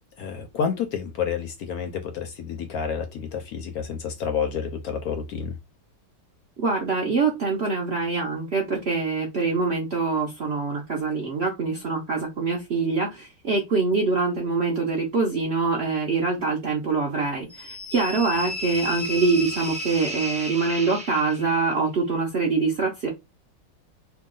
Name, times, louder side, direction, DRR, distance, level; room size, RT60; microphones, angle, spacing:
voice 1, 0.2-5.5, left 7 dB, 70° left, 0.9 m, -29 dB
voice 2, 6.6-23.1, right 4 dB, 60° right, 0.6 m, -24 dB
sound 1, 17.5-21.7, equal, 10° right, 0.4 m, -33 dB
2.9 x 2.3 x 3.7 m
omnidirectional pair, 1.9 m